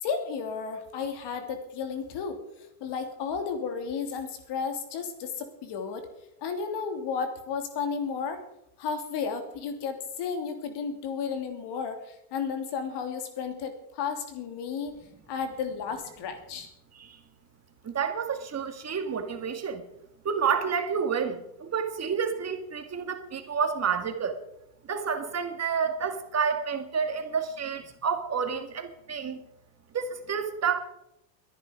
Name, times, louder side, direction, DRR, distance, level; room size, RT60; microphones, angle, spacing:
voice 1, 0.0-2.4 2.8-6.1 6.4-8.4 8.8-14.9 15.3-16.7, left 6 dB, 60° left, 6 dB, 3.0 m, -33 dB
voice 2, 17.8-19.8 20.2-24.4 24.8-29.4 29.9-30.8, right 6 dB, 30° right, 7 dB, 2.0 m, -29 dB
21.5 x 10.0 x 5.1 m, 0.83 s
supercardioid pair, 90°, 47 cm